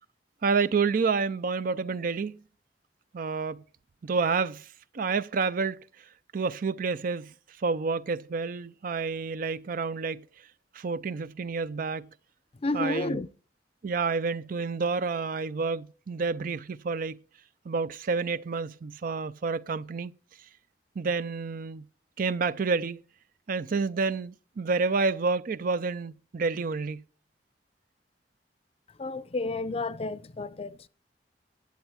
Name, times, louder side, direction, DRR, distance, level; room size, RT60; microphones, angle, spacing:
voice 1, 0.4-2.4 3.1-3.6 4.0-4.7 4.9-6.0 6.3-10.2 10.7-12.1 12.7-13.2 13.8-17.2 17.7-20.1 21.0-21.9 22.2-23.0 23.5-27.0, right 4 dB, 50° right, 0.4 m, -29 dB
voice 2, 12.6-13.3 29.0-30.9, left 2 dB, 35° left, 0.5 m, -31 dB
11.5 x 8.1 x 4.6 m
head